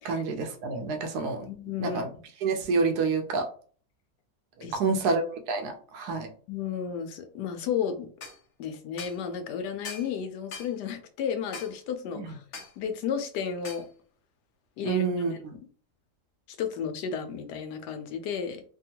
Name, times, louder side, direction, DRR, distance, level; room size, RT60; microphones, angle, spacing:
voice 1, 0.0-1.5 1.8-2.1 2.4-3.5 4.6-5.2 5.5-6.3 12.2-12.3 14.8-15.5, right 4 dB, 80° right, 5 dB, 1.2 m, -28 dB
voice 2, 1.5-2.0 4.6-5.0 6.5-8.1 8.6-12.4 12.8-13.8 14.8-15.3 16.5-18.6, left 7 dB, 85° left, 7 dB, 1.2 m, -33 dB
sound 1, 8.2-8.4 9.0-9.2 9.8-10.1 10.5-10.7 11.5-11.7 12.5-12.7 13.6-13.9, left 5 dB, 55° left, 1.0 m, -40 dB
3.5 x 2.2 x 2.8 m, 0.44 s
omnidirectional pair, 1.7 m